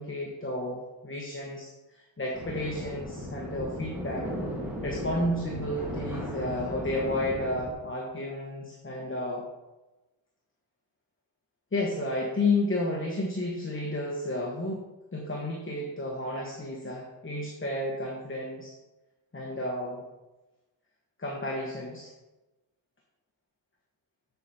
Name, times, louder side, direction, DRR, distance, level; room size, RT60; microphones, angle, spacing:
voice 1, 0.0-4.3 4.8-9.5 11.7-14.9 15.1-18.7 19.3-20.0 21.2-22.1, left 1 dB, 25° left, -2 dB, 1.2 m, -32 dB
sound 1, 2.3-7.7, equal, 5° right, 1.9 m, -36 dB
8.2 x 7.4 x 4.2 m, 1.1 s
wide cardioid pair, 155°, 47 cm